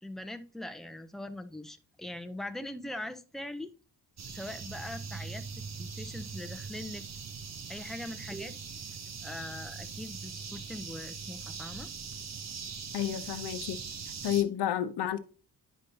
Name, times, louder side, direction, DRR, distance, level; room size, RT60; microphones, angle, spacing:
voice 1, 0.0-3.7 4.3-5.5 5.8-7.1 7.7-8.8 9.2-11.9, left 1 dB, ahead, 0.7 m, -41 dB
sound 1, 4.2-14.4, right 5 dB, 40° right, 0.8 m, -41 dB
voice 2, 12.9-13.8 14.2-15.2, left 11 dB, 75° left, 0.8 m, -30 dB
10.0 x 5.2 x 2.7 m
cardioid pair, 100°, 40 cm